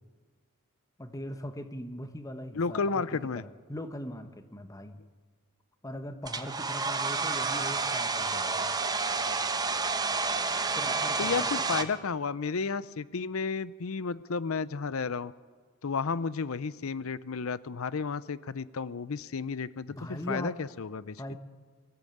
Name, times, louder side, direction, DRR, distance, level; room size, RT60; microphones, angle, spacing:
voice 1, 1.0-3.0 3.3-5.0 5.8-8.7 10.8-11.7 19.9-20.5 21.2-21.4, equal, 15° left, 8 dB, 1.1 m, -40 dB
voice 2, 2.5-3.4 11.2-15.3 15.8-21.3, left 5 dB, 85° left, 17 dB, 0.6 m, -32 dB
Domestic sounds home sounds, 6.3-11.8, right 4 dB, 20° right, 0.9 m, -30 dB
22.5 x 14.5 x 8.7 m, 1.5 s
head